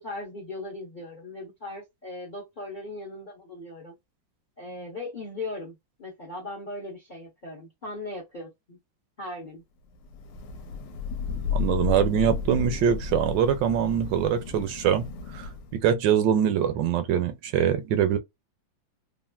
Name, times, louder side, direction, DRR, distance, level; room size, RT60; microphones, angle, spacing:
voice 1, 0.0-3.9 4.6-8.8 9.2-9.6, left 2 dB, 50° left, 0.5 m, -38 dB
Thunder / Rain, 10.1-15.9, left 6 dB, 75° left, 1.2 m, -33 dB
voice 2, 11.3-15.1 15.3-18.2, right 9 dB, 75° right, 1.2 m, -24 dB
3.0 x 2.4 x 2.2 m
omnidirectional pair, 2.1 m